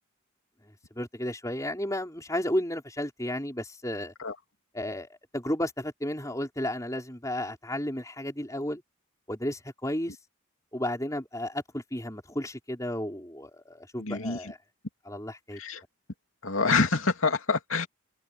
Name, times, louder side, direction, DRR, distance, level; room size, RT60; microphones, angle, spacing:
voice 1, 0.9-4.1 4.7-8.8 9.3-10.2 10.7-14.6 15.1-15.6, left 1 dB, 15° left, 5.1 m, -33 dB
voice 2, 14.0-14.5 15.5-15.8 16.4-17.9, left 4 dB, 75° left, 2.7 m, -26 dB
head